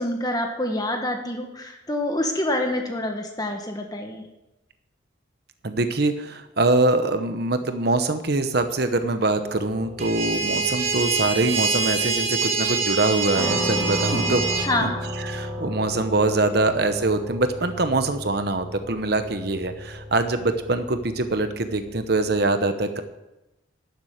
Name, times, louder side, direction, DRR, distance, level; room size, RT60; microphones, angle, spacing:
voice 1, 0.0-4.2 14.1-14.4 14.6-15.0, left 1 dB, 20° left, 3 dB, 1.6 m, -27 dB
voice 2, 5.6-14.4 14.8-14.9 15.2-23.0, right 2 dB, 55° right, 9 dB, 0.9 m, -23 dB
sound 1, 9.4-22.4, left 1 dB, 10° right, 3.9 m, -35 dB
sound 2, 10.0-14.7, right 4 dB, 30° right, 2.0 m, -25 dB
12.5 x 7.5 x 7.9 m, 0.96 s
head